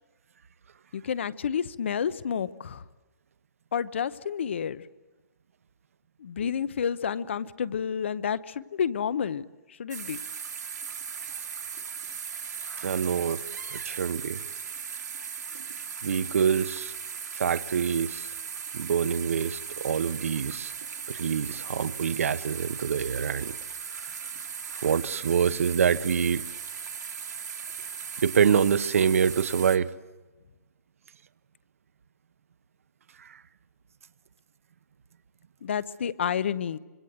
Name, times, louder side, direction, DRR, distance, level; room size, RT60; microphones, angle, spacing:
voice 1, 0.9-2.8 3.7-4.8 6.2-9.4 9.8-10.2 35.6-36.8, left 7 dB, 40° left, 0.8 m, -30 dB
sound 1, 9.9-29.8, right 6 dB, 75° right, 2.7 m, -38 dB
voice 2, 12.7-13.4 13.7-14.4 16.0-16.9 17.3-18.3 18.7-20.7 21.1-23.6 24.1-24.2 24.7-26.4 28.2-29.9, right 7 dB, 50° right, 1.0 m, -26 dB
26.0 x 23.5 x 8.0 m
hypercardioid pair, 180°, 9 cm